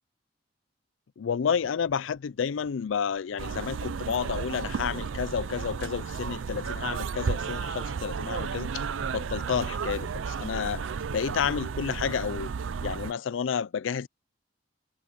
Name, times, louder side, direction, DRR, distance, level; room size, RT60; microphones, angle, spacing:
voice 1, 1.2-8.8 9.1-12.5 12.8-14.1, left 7 dB, 85° left, 0.4 m, -30 dB
sound 1, 1.4-10.0, equal, 10° right, 5.8 m, -64 dB
sound 2, 3.4-13.1, right 6 dB, 90° right, 0.5 m, -33 dB
sound 3, 4.0-9.1, left 1 dB, 45° left, 7.5 m, -66 dB
head